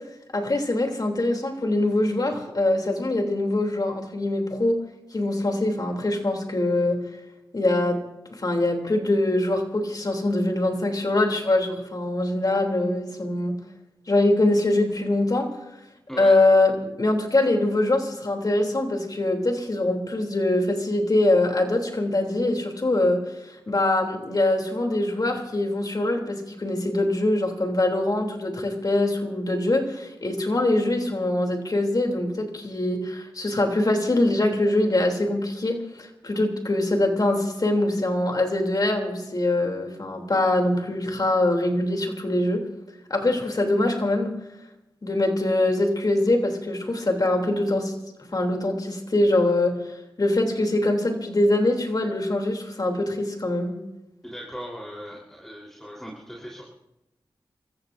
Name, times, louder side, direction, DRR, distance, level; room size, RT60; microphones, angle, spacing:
voice 1, 0.3-4.8 5.1-7.0 7.5-8.0 8.3-13.6 14.1-15.5 16.2-42.6 43.1-44.3 45.0-47.9 48.3-49.8 50.2-53.8, left 2 dB, 45° left, 3 dB, 3.1 m, -23 dB
voice 2, 54.2-56.7, equal, 5° left, -3 dB, 3.9 m, -38 dB
29.0 x 14.5 x 2.7 m, 0.94 s
cardioid pair, 55°, 9 cm